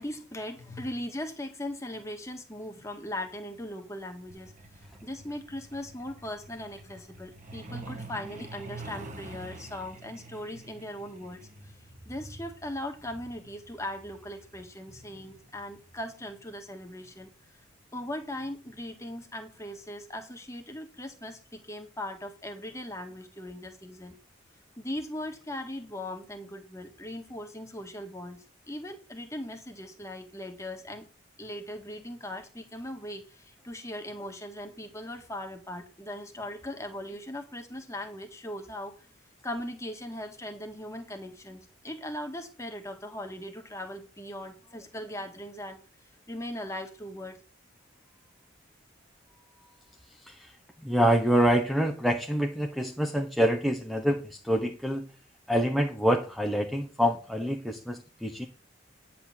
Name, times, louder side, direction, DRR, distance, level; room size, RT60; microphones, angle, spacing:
voice 1, 0.0-17.3 17.9-24.2 24.8-31.1 31.4-39.1 39.4-45.8 46.3-47.4, left 1 dB, 15° left, 5 dB, 1.6 m, -39 dB
Truck, 4.3-16.6 17.8-18.0 18.4-18.6 18.9-19.2 19.5-19.6 20.1-20.2, right 2 dB, 40° right, 1.3 m, -47 dB
voice 2, 50.1-55.1 55.5-58.5, equal, ahead, 4 dB, 0.8 m, -26 dB
10.0 x 4.3 x 7.3 m, 0.36 s
head